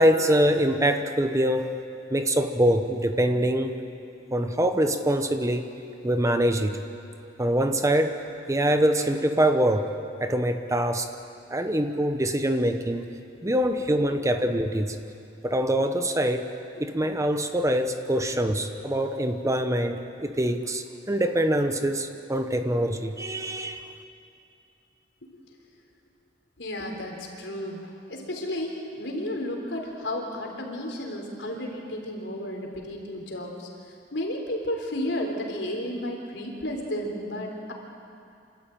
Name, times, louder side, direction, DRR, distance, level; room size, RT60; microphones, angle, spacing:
voice 1, 0.0-1.7 2.1-3.7 4.3-5.7 6.0-6.8 7.4-8.2 8.5-9.9 10.2-11.1 11.5-13.1 13.4-15.0 15.4-16.5 16.8-23.9, right 1 dB, 20° right, 7 dB, 1.0 m, -24 dB
voice 2, 13.5-13.9 26.6-33.7 34.1-37.7, left 1 dB, 85° left, 1 dB, 3.8 m, -33 dB
27.5 x 13.0 x 9.1 m, 2.6 s
head